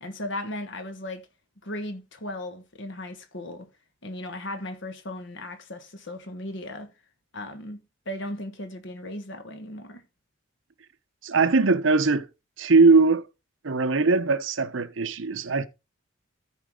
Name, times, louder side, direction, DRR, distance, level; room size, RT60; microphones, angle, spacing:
voice 1, 0.0-1.3 1.6-3.7 4.0-6.9 7.3-7.8 8.0-10.0, left 1 dB, 60° left, 1.4 m, -36 dB
voice 2, 11.2-12.3 12.6-13.2 13.6-15.7, right 4 dB, 65° right, 0.8 m, -20 dB
13.5 x 4.7 x 3.7 m
head